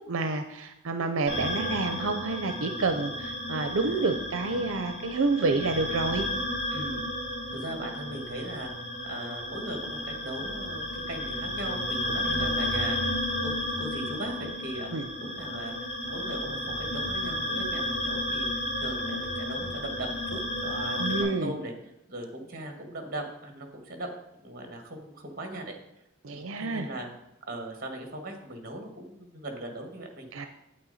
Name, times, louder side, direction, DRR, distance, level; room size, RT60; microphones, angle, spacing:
voice 1, 0.1-6.3 12.3-12.5 14.9-15.1 21.0-21.5 26.2-26.9 30.3-30.5, right 3 dB, 85° right, 7 dB, 0.6 m, -29 dB
sound 1, 1.3-21.2, left 1 dB, 50° left, 3.6 m, -32 dB
voice 2, 6.7-7.0 7.5-8.7 9.1-14.9 15.2-15.7 16.0-21.7 22.1-24.1 24.4-25.8 26.2-27.1 27.5-30.3, right 1 dB, 45° right, 3 dB, 1.7 m, -39 dB
8.7 x 8.6 x 4.1 m, 0.86 s
head